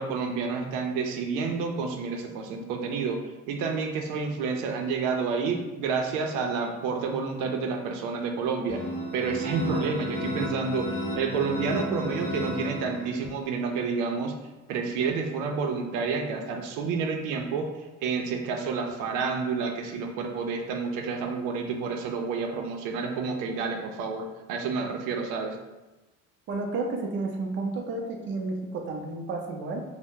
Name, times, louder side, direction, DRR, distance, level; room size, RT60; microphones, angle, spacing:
voice 1, 0.0-3.2 3.5-8.8 9.1-14.3 14.7-17.7 18.0-25.6, right 5 dB, 90° right, 3 dB, 0.5 m, -29 dB
sound 1, 8.7-13.4, left 1 dB, 40° left, 0.5 m, -33 dB
voice 2, 26.5-29.8, right 3 dB, 40° right, 2 dB, 0.4 m, -31 dB
2.7 x 2.0 x 3.5 m, 1.1 s
cardioid pair, 140°, 32 cm